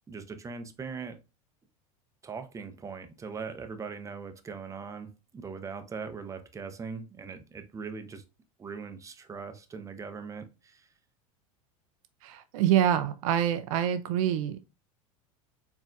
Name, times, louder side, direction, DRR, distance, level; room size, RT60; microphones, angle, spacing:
voice 1, 0.1-1.2 2.2-8.2 8.6-10.9, right 5 dB, 15° right, 0.6 m, -40 dB
voice 2, 12.2-14.6, right 10 dB, 70° right, 0.5 m, -26 dB
4.3 x 3.4 x 2.3 m
hypercardioid pair, 90°, 19 cm